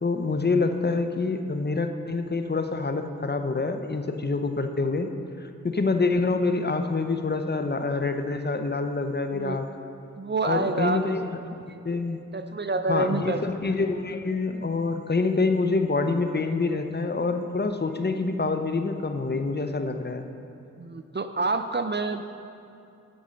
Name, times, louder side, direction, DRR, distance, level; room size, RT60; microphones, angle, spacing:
voice 1, 0.0-5.1 5.4-9.7 10.4-11.5 11.8-12.2 12.9-20.3, left 3 dB, 30° left, 7 dB, 0.8 m, -26 dB
voice 2, 10.2-11.1 11.7-11.8 12.3-13.4 20.8-22.2, right 3 dB, 35° right, 9 dB, 0.5 m, -27 dB
14.0 x 5.4 x 5.2 m, 2.7 s
cardioid pair, 40°, 32 cm